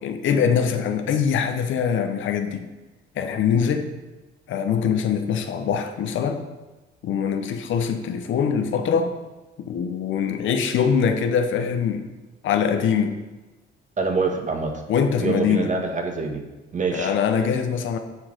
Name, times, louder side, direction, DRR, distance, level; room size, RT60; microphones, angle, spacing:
voice 1, 0.0-2.7 3.2-3.9 4.5-6.5 7.0-9.1 9.6-12.1 12.4-13.2 14.9-15.7 16.9-18.0, left 7 dB, 75° left, 6 dB, 1.0 m, -23 dB
voice 2, 14.0-14.7 15.2-16.4 16.7-17.1, right 4 dB, 40° right, 4 dB, 1.5 m, -25 dB
9.1 x 4.7 x 5.1 m, 1.2 s
cardioid pair, 90°, 20 cm